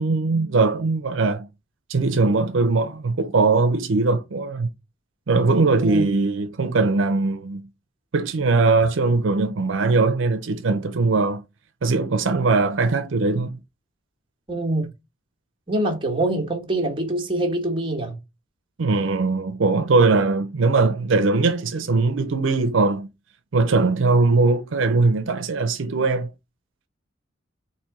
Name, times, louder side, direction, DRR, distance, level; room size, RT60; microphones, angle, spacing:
voice 1, 0.0-1.5 1.9-4.7 5.3-7.6 8.1-11.4 11.8-13.6 18.8-23.1 23.5-26.3, right 3 dB, 75° right, 0.5 m, -20 dB
voice 2, 14.5-14.9 15.7-18.2, right 1 dB, 25° right, 1.0 m, -24 dB
4.2 x 2.6 x 4.6 m
head